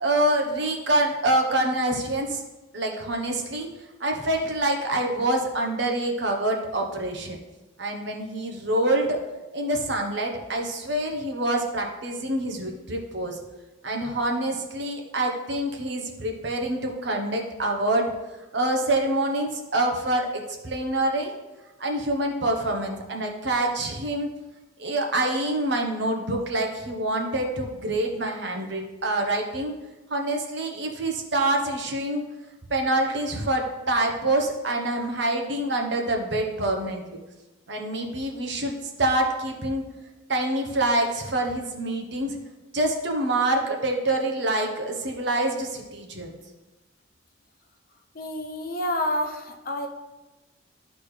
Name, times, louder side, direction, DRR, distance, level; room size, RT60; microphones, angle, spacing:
voice 1, 0.0-2.4 2.7-3.7 4.0-7.4 7.8-9.2 9.5-13.4 13.8-18.1 18.5-21.3 21.8-24.3 24.8-29.7 30.1-32.2 32.7-37.2 37.7-39.8 40.3-42.4 42.7-46.4, right 1 dB, 60° right, 2 dB, 1.0 m, -26 dB
voice 2, 48.1-49.9, left 1 dB, 45° left, 3 dB, 0.7 m, -28 dB
11.5 x 4.2 x 3.2 m, 1.1 s
head